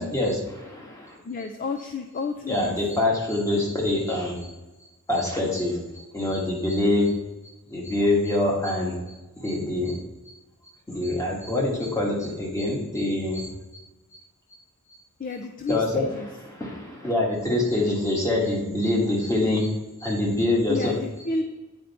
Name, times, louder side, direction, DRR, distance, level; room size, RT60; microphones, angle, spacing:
voice 1, 0.0-1.2 2.5-4.4 5.1-5.8 6.1-7.1 7.7-9.0 9.4-10.0 10.9-13.5 15.7-19.7 20.0-21.0, left 2 dB, 15° left, -2 dB, 1.4 m, -25 dB
voice 2, 1.2-2.8 15.2-16.3 20.7-21.4, left 3 dB, 40° left, 6 dB, 0.4 m, -31 dB
8.9 x 4.4 x 4.1 m, 1.1 s
head